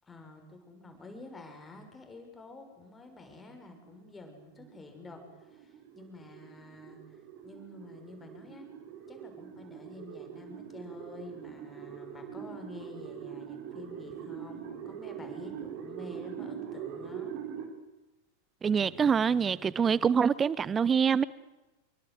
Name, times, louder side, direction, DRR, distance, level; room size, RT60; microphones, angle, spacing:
voice 1, 0.0-8.7 9.1-17.3 18.8-19.2 19.6-20.1, left 2 dB, 15° left, 6.6 m, -49 dB
sound 1, 3.3-17.7, right 8 dB, 40° right, 4.6 m, -43 dB
voice 2, 18.6-21.2, right 6 dB, 20° right, 0.9 m, -25 dB
27.0 x 24.0 x 8.0 m
figure-of-eight pair, 90°, 0 cm